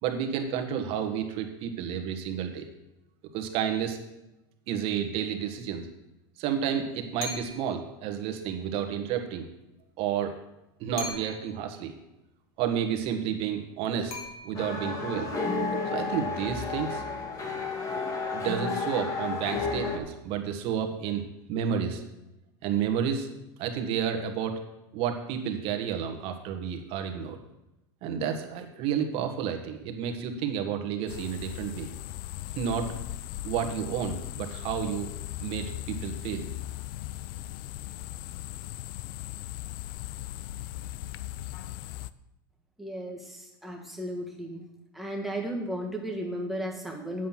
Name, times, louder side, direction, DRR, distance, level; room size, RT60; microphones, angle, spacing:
voice 1, 0.0-2.6 3.3-4.0 4.7-5.9 6.4-9.4 10.0-10.3 10.8-11.9 12.6-14.2 14.4-15.4 15.7-17.0 18.3-21.2 21.5-22.0 22.6-23.3 23.6-24.6 24.9-27.4 28.0-31.9 32.5-32.9 33.4-35.1 35.4-36.5, right 8 dB, 50° right, 6 dB, 1.6 m, -31 dB
sound 1, 7.2-7.8 11.0-11.7 14.1-14.9, left 2 dB, 50° left, 2.7 m, -39 dB
sound 2, 14.5-20.0, left 4 dB, 25° left, 1.7 m, -31 dB
sound 3, 31.1-42.1, left 14 dB, 65° left, 0.5 m, -38 dB
voice 2, 42.8-44.6 44.9-47.3, equal, ahead, -1 dB, 1.9 m, -34 dB
8.3 x 7.7 x 5.9 m, 0.94 s
supercardioid pair, 120°, 12 cm